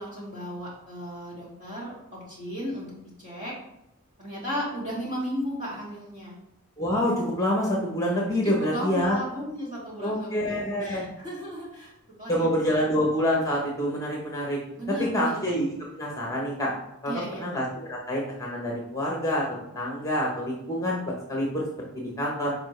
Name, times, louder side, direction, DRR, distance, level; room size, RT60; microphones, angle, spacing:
voice 1, 0.0-2.9 3.2-3.5 4.2-6.4 8.4-11.9 12.2-12.5 14.8-15.4 17.1-17.5, equal, 35° right, -6 dB, 2.5 m, -35 dB
voice 2, 6.8-9.2 10.0-11.1 12.3-14.6 15.0-16.7 17.0-19.4 19.7-21.7 21.9-22.5, equal, 15° left, -2 dB, 1.1 m, -27 dB
7.1 x 5.1 x 3.3 m, 0.85 s
head